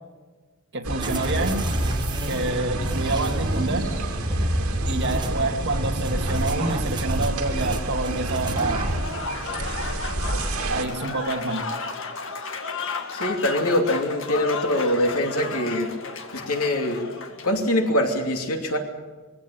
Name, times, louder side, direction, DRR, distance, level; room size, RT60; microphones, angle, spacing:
voice 1, 0.7-1.7 2.2-3.9 4.9-9.0 10.7-11.6, right 2 dB, 55° right, 2 dB, 2.6 m, -27 dB
sound 1, 0.8-10.8, right 1 dB, 85° right, 2.4 m, -29 dB
sound 2, 1.0-9.0, right 1 dB, 20° right, 1.6 m, -29 dB
Applause / Crowd, 8.7-17.6, left 4 dB, 65° left, 2.0 m, -33 dB
voice 2, 13.1-15.9 16.3-17.0 17.4-18.8, left 1 dB, 90° left, 3 dB, 2.9 m, -23 dB
22.5 x 16.5 x 8.8 m, 1.3 s
head